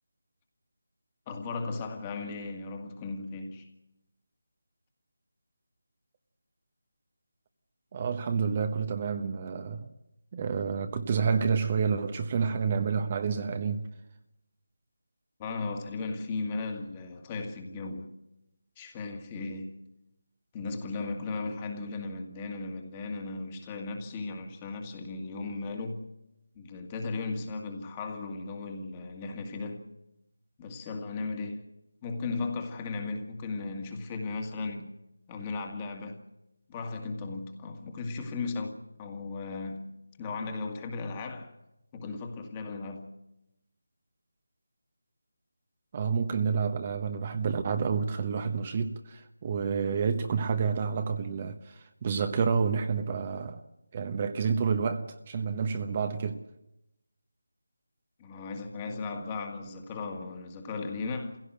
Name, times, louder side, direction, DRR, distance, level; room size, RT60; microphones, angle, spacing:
voice 1, 1.3-3.7 15.4-18.2 18.8-19.8 20.5-26.1 26.6-29.9 30.6-31.7 32.0-34.9 35.3-36.3 36.7-41.5 41.9-43.1 58.2-61.4, left 3 dB, 20° left, 2.0 m, -36 dB
voice 2, 7.9-9.9 10.3-13.8 45.9-53.6 53.9-56.4, right 5 dB, 30° right, 1.0 m, -29 dB
25.5 x 16.5 x 7.9 m
figure-of-eight pair, 165°, 0 cm